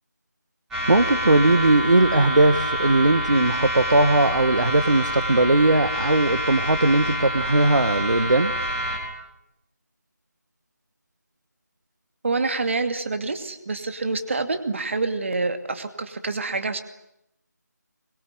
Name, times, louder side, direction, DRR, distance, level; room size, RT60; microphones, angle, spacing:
sound 1, 0.7-9.0, right 1 dB, 5° right, 5.1 m, -27 dB
voice 1, 0.9-8.5, right 2 dB, 80° right, 11 dB, 1.9 m, -19 dB
voice 2, 12.2-16.8, right 3 dB, 45° right, 8 dB, 2.5 m, -27 dB
24.5 x 23.0 x 9.4 m, 0.82 s
figure-of-eight pair, 170°, 10 cm